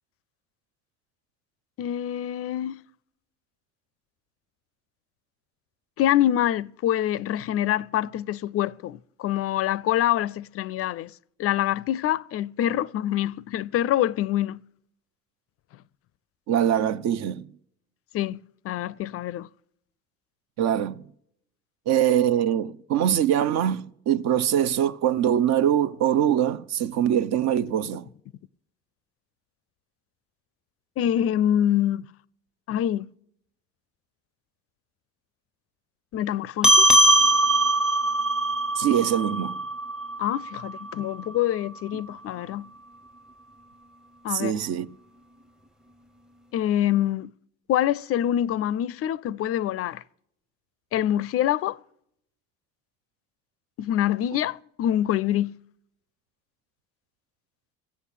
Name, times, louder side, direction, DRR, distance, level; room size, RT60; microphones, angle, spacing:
voice 1, 1.8-2.8 6.0-11.1 11.4-14.6 18.1-19.5 31.0-32.1 32.7-33.1 36.1-36.9 40.2-42.7 44.2-44.5 46.5-47.3 47.7-50.0 50.9-51.8 53.8-55.5, left 11 dB, 50° left, 0.4 m, -25 dB
voice 2, 16.5-17.5 20.6-21.0 21.9-28.1 38.8-39.6 44.3-44.9, right 10 dB, 60° right, 0.7 m, -23 dB
sound 1, 36.6-41.4, right 2 dB, ahead, 0.7 m, -21 dB
14.5 x 8.3 x 8.2 m
hypercardioid pair, 70°, 31 cm